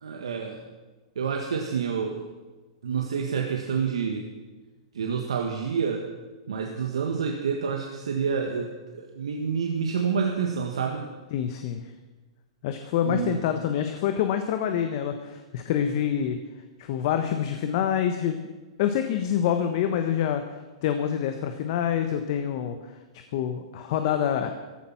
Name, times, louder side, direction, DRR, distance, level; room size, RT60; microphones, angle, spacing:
voice 1, 0.0-0.6 1.1-2.3 2.8-4.2 4.9-6.0 6.5-11.1 13.0-13.4, right 6 dB, 80° right, 2 dB, 1.6 m, -28 dB
voice 2, 11.3-11.8 12.6-16.4 16.8-18.4 18.8-20.4 20.8-22.8 23.3-24.5, left 9 dB, 55° left, 7 dB, 1.2 m, -26 dB
15.0 x 12.0 x 5.9 m, 1.2 s
hypercardioid pair, 115°, 3 cm